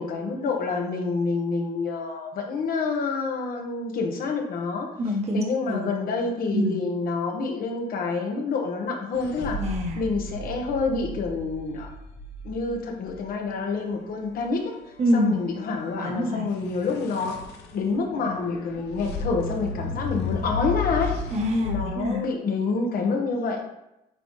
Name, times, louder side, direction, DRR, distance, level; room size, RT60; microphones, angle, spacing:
voice 1, 0.0-4.9 5.3-9.6 10.0-11.9 12.4-14.7 15.1-17.3 17.7-21.1 21.6-23.7, left 4 dB, 60° left, 2 dB, 1.3 m, -27 dB
voice 2, 5.0-5.9 6.5-6.8 9.6-10.0 15.0-15.3 16.0-16.4 21.3-22.2, left 1 dB, 40° right, -1 dB, 1.3 m, -25 dB
sound 1, 9.1-13.2 16.5-21.9, left 4 dB, 85° left, 0.9 m, -34 dB
9.0 x 4.1 x 3.2 m, 0.87 s
cardioid pair, 110°, 17 cm